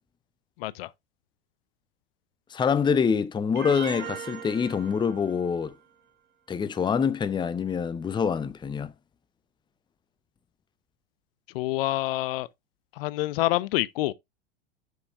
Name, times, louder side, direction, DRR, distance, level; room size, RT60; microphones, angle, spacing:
voice 1, 2.5-5.7 6.5-8.9, left 6 dB, 15° left, 0.6 m, -25 dB
sound 1, 3.6-5.7, right 7 dB, 35° right, 1.9 m, -39 dB
voice 2, 11.5-12.5 13.0-14.1, left 17 dB, 60° left, 0.6 m, -27 dB
9.6 x 6.5 x 2.5 m
hypercardioid pair, 95°, 32 cm